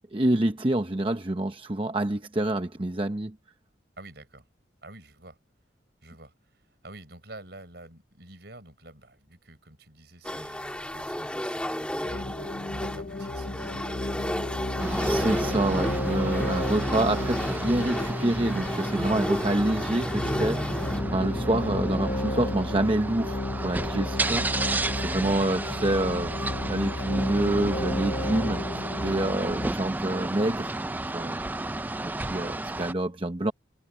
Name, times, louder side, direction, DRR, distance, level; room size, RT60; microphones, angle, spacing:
voice 1, 0.1-3.3 15.0-24.4 24.9-31.5 32.0-33.5, right 1 dB, 25° right, 0.8 m, -27 dB
voice 2, 4.0-4.5 4.8-5.4 6.0-14.8 24.3-24.5 25.2-25.4, right 2 dB, 60° right, 5.3 m, -48 dB
sound 1, 10.2-21.0, equal, 5° left, 2.1 m, -33 dB
sound 2, 12.0-29.7, left 1 dB, 45° left, 0.9 m, -33 dB
sound 3, 14.8-32.9, right 2 dB, 10° right, 0.3 m, -32 dB
head